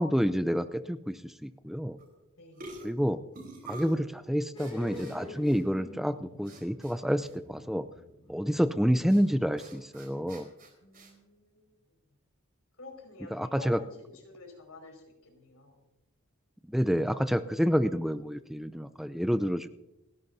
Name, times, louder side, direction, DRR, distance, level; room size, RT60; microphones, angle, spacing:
voice 1, 0.0-2.0 2.8-3.2 3.7-7.9 8.3-10.5 13.3-13.8 16.7-19.7, equal, ahead, 11 dB, 0.3 m, -28 dB
sound 1, 2.0-2.2 2.6-4.0 4.6-5.2 5.4-5.6 6.5-7.0 7.2-7.4 9.1-9.2 9.6-11.1, right 1 dB, 40° right, 4.3 m, -46 dB
voice 2, 2.4-2.9 10.8-11.7 12.8-13.9 14.2-15.8, left 2 dB, 80° left, 2 dB, 5.2 m, -49 dB
sound 2, 4.5-10.0 10.3-10.4, left 1 dB, 25° left, 6.3 m, -46 dB
29.5 x 11.0 x 2.7 m, 0.95 s
head